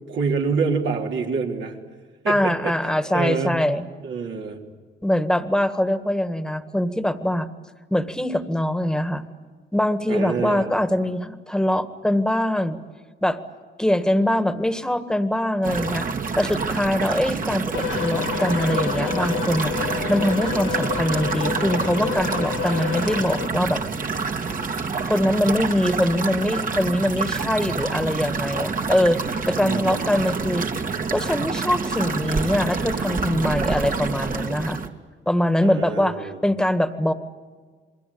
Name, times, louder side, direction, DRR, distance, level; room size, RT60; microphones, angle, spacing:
voice 1, 0.1-1.8 2.2-2.7 3.1-3.6 4.0-4.6 10.1-10.7 29.6-30.1 35.6-36.4, right 5 dB, 70° right, 0 dB, 3.9 m, -26 dB
voice 2, 2.3-3.8 5.0-7.5 7.9-9.2 9.7-12.8 13.2-13.4 13.8-16.1 16.4-19.8 20.1-23.8 25.1-30.7 31.1-34.8 35.3-37.1, left 1 dB, 5° left, 10 dB, 1.8 m, -23 dB
sound 1, 15.6-34.9, right 4 dB, 45° right, 2.2 m, -27 dB
sound 2, 17.7-23.5, left 9 dB, 90° left, 1.6 m, -30 dB
28.5 x 22.0 x 8.7 m, 1.5 s
cardioid pair, 90°, 20 cm